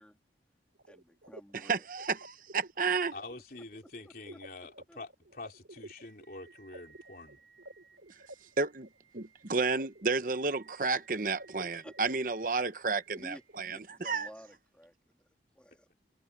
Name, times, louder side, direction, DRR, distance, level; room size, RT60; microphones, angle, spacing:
sound 1, 0.8-13.6, right 2 dB, 85° right, 3.0 m, -52 dB
voice 1, 0.9-1.9 4.0-4.4 4.9-5.0 11.8-11.9 13.1-13.4 13.7-15.3 15.5-15.9, equal, 5° left, 3.2 m, -52 dB
voice 2, 1.5-3.1 8.6-8.9 9.1-14.3, right 4 dB, 50° right, 0.9 m, -31 dB
voice 3, 3.1-7.4, left 2 dB, 55° left, 3.9 m, -46 dB
head